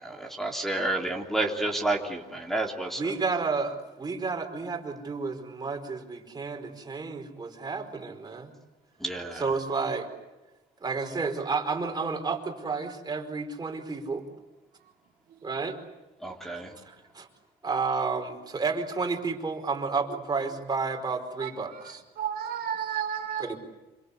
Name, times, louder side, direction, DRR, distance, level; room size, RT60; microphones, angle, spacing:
voice 1, 0.0-3.1 9.0-9.4 16.2-16.7, right 2 dB, ahead, 2 dB, 3.4 m, -30 dB
voice 2, 2.9-8.5 9.3-10.1 10.8-14.2 15.4-15.8 16.8-17.3 17.6-22.0 23.4-23.6, right 4 dB, 25° right, 4 dB, 4.8 m, -31 dB
voice 3, 21.4-23.4, right 9 dB, 60° right, 2 dB, 2.8 m, -33 dB
27.5 x 25.0 x 8.4 m, 1.1 s
cardioid pair, 110°, 17 cm